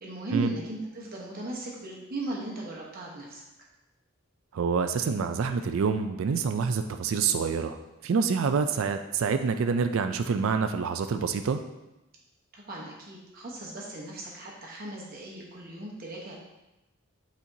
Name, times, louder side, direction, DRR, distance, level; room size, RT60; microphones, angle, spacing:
voice 1, 0.0-3.4 12.5-16.4, right 2 dB, 45° right, -3 dB, 1.1 m, -37 dB
voice 2, 4.5-7.8 8.0-11.6, right 5 dB, 75° right, 8 dB, 0.4 m, -27 dB
8.3 x 4.3 x 2.7 m, 0.96 s
head